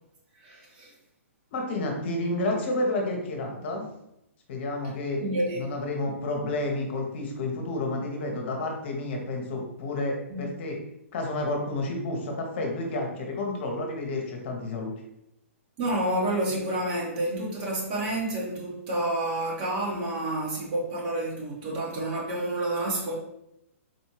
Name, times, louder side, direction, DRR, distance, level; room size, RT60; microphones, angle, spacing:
voice 1, 0.4-0.9 5.2-5.6 10.3-10.4 15.8-23.1, right 1 dB, 40° right, 1.4 m, -29 dB
voice 2, 1.5-3.8 4.5-5.2 5.5-10.8 11.1-14.9, left 2 dB, 50° left, 1.0 m, -30 dB
4.0 x 2.7 x 3.1 m
hypercardioid pair, 125°, 8 cm